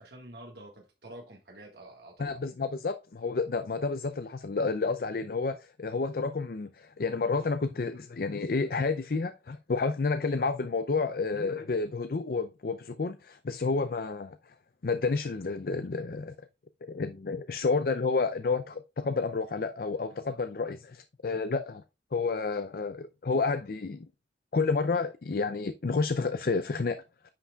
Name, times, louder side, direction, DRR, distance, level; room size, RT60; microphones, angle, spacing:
voice 1, 0.0-2.5, right 1 dB, 65° right, 1.7 m, -48 dB
voice 2, 2.2-14.5 14.8-16.3 16.8-21.8 22.1-24.1 24.5-27.0, left 4 dB, 55° left, 0.5 m, -30 dB
9.8 x 5.8 x 2.3 m
head